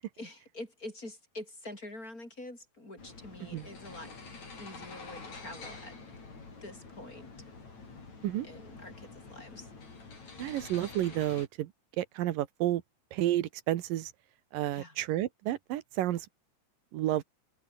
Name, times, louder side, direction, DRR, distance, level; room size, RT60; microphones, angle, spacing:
voice 1, 0.2-4.1 4.6-6.1 6.6-7.5 8.4-9.7 14.7-15.0, left 1 dB, 25° left, 7.5 m, -46 dB
sound 1, 3.0-11.5, left 4 dB, 55° left, 7.3 m, -47 dB
voice 2, 10.4-11.7 12.0-12.8 13.1-14.1 14.5-16.3 16.9-17.2, right 13 dB, 85° right, 2.8 m, -31 dB
omnidirectional pair, 3.9 m